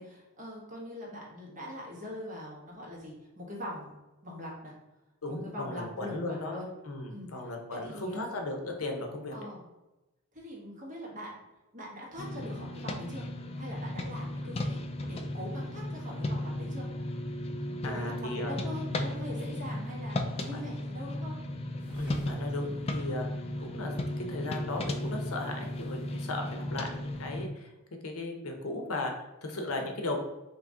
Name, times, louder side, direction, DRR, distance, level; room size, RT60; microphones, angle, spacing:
voice 1, 0.0-4.7 5.3-6.7 7.1-8.2 9.3-9.6 10.3-11.4 11.7-13.3 13.5-14.8 15.1-16.9 17.8-21.4 26.5-26.8 29.8-29.9, left 1 dB, 35° right, -4 dB, 1.4 m, -42 dB
voice 2, 5.2-6.6 6.8-9.4 14.4-14.6 17.8-18.5 19.4-19.6 20.5-20.6 21.9-27.7 28.0-30.2, left 2 dB, 70° left, 3 dB, 0.7 m, -36 dB
sound 1, 12.2-27.5, left 1 dB, 30° left, 0.3 m, -35 dB
sound 2, 21.8-27.4, equal, 5° right, 1.2 m, -54 dB
4.0 x 2.9 x 3.6 m, 1.0 s
head